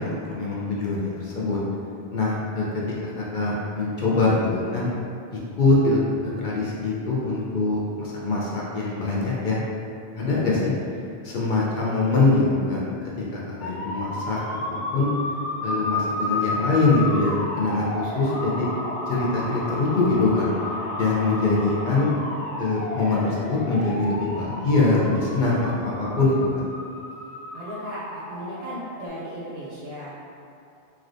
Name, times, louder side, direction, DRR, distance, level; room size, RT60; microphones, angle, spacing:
voice 1, 0.0-1.6 2.1-4.9 5.3-9.6 10.2-10.7 11.2-12.8 13.3-15.1 15.6-18.7 19.1-20.5 21.0-22.1 22.6-26.5, left 3 dB, 60° left, -6 dB, 0.6 m, -23 dB
sound 1, 13.6-29.1, left 2 dB, 90° left, 0.9 m, -32 dB
voice 2, 27.5-30.2, equal, 70° right, -7 dB, 0.8 m, -36 dB
3.3 x 2.4 x 2.5 m, 2.6 s
omnidirectional pair, 1.1 m